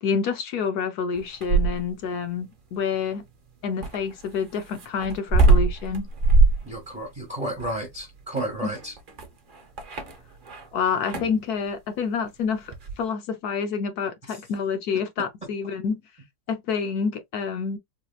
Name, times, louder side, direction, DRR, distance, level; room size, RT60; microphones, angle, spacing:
voice 1, 0.0-3.2 3.6-6.1 8.6-8.7 10.7-16.0 16.5-17.8, left 6 dB, 70° left, 1.2 m, -28 dB
sound 1, 1.2-2.1 3.8-10.7 11.0-11.4 12.7-13.0, right 3 dB, 50° right, 0.6 m, -22 dB
voice 2, 6.7-8.9, right 1 dB, 20° right, 1.2 m, -32 dB
4.0 x 2.7 x 2.3 m
omnidirectional pair, 1.8 m